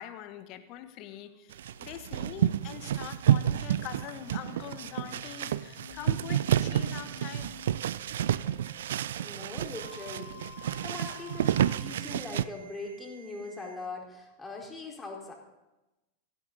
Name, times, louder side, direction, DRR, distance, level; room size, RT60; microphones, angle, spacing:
voice 1, 0.0-1.5 1.8-7.5, left 11 dB, 40° left, 9 dB, 1.5 m, -43 dB
sound 1, 1.5-12.5, right 11 dB, 60° right, 0.4 m, -30 dB
sound 2, 1.8-13.7, left 3 dB, 75° left, 4.7 m, -52 dB
voice 2, 9.1-15.3, left 3 dB, 10° left, -1 dB, 4.3 m, -41 dB
17.5 x 15.5 x 4.1 m, 1.0 s
figure-of-eight pair, 90°, 0 cm